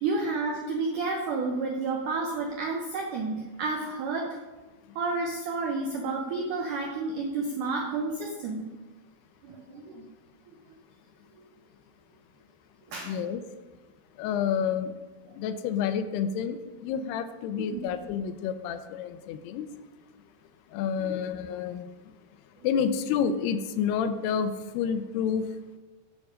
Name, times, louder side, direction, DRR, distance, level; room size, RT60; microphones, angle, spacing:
voice 1, 0.0-4.4 5.0-8.7 9.4-10.1 12.9-13.2 17.6-17.8 21.0-21.1, right 3 dB, 90° right, 1 dB, 1.8 m, -31 dB
voice 2, 13.0-13.4 14.2-15.0 15.3-19.7 20.7-21.9 22.6-25.4, left 7 dB, 80° left, 10 dB, 2.5 m, -29 dB
9.6 x 6.8 x 5.0 m, 1.2 s
omnidirectional pair, 4.8 m